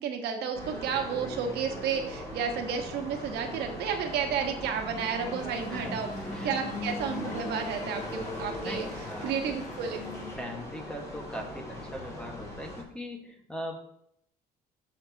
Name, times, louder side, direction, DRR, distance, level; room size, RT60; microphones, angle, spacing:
voice 1, 0.0-6.1 6.4-10.0, right 7 dB, 75° right, 4 dB, 1.5 m, -32 dB
sound 1, 0.5-12.8, left 1 dB, 20° left, 3.9 m, -39 dB
sound 2, 5.4-10.4, left 4 dB, 45° left, 1.1 m, -47 dB
voice 2, 8.6-9.3 10.4-13.7, equal, 5° left, 1 dB, 1.5 m, -40 dB
14.0 x 5.9 x 2.9 m, 0.72 s
cardioid pair, 110°, 17 cm